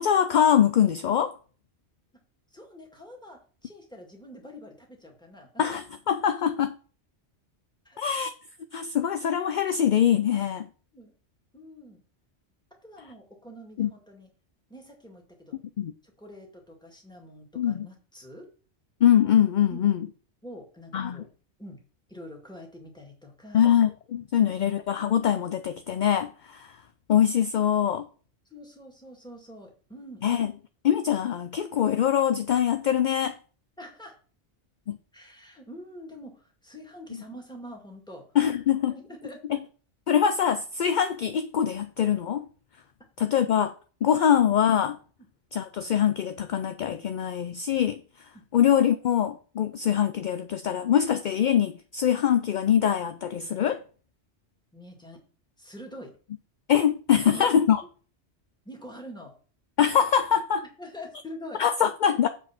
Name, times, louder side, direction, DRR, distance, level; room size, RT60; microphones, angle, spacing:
voice 1, 0.0-1.3 5.6-6.7 8.0-8.3 8.7-10.7 13.8-13.9 15.8-15.9 17.6-17.9 19.0-20.0 20.9-21.2 23.5-26.7 27.1-28.1 30.2-30.5 30.8-33.3 34.9-35.0 38.4-38.9 39.5-39.6 40.1-42.5 43.2-43.7 44.0-45.0 45.5-48.0 48.5-53.8 56.7-57.8 59.8-60.6 61.6-62.3, left 9 dB, 55° left, 0.5 m, -23 dB
voice 2, 2.5-5.6 7.9-8.0 10.9-11.1 11.5-12.0 12.8-14.3 14.7-15.6 16.0-18.5 19.7-20.0 20.4-21.3 21.6-21.8 22.1-23.7 24.4-24.7 28.5-30.5 33.8-34.2 35.1-38.2 38.9-39.6 54.7-55.2 55.6-56.1 57.3-57.6 58.7-59.3 60.8-61.6, equal, 5° left, 2.0 m, -45 dB
7.3 x 5.4 x 5.8 m
omnidirectional pair, 1.2 m